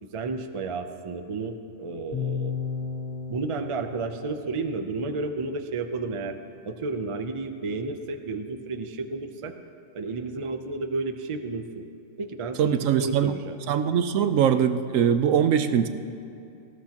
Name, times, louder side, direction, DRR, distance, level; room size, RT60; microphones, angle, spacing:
voice 1, 0.0-2.5 3.3-6.4 6.6-9.5 9.9-11.8 12.2-13.6, right 3 dB, 35° right, 6 dB, 0.5 m, -32 dB
sound 1, 2.1-6.2, left 6 dB, 90° left, 1.6 m, -35 dB
voice 2, 12.6-13.3 13.7-15.9, right 8 dB, 80° right, 10 dB, 1.0 m, -22 dB
19.0 x 14.5 x 2.9 m, 2.6 s
omnidirectional pair, 1.3 m